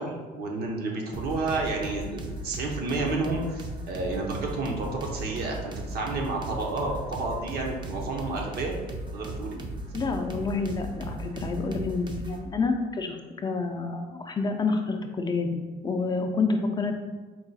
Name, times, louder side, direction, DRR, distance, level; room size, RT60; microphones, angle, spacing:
voice 1, 0.0-8.7 9.1-9.6, right 3 dB, 70° right, 0 dB, 0.9 m, -30 dB
sound 1, 1.1-12.4, right 1 dB, 25° right, 0.5 m, -37 dB
voice 2, 9.9-16.9, left 4 dB, 25° left, 4 dB, 0.4 m, -28 dB
4.6 x 2.2 x 4.0 m, 1.3 s
cardioid pair, 110°, 17 cm